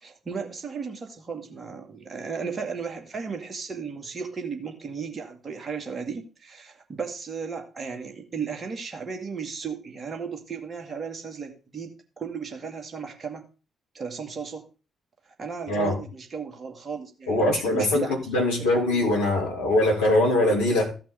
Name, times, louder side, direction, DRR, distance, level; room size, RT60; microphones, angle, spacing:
voice 1, 0.0-13.5 13.9-14.7 15.4-18.2 18.6-19.0, right 5 dB, 35° right, 2.3 m, -35 dB
voice 2, 15.7-16.0 17.3-20.9, left 1 dB, 75° left, 2.6 m, -22 dB
14.5 x 5.9 x 3.5 m
figure-of-eight pair, 40°, 0 cm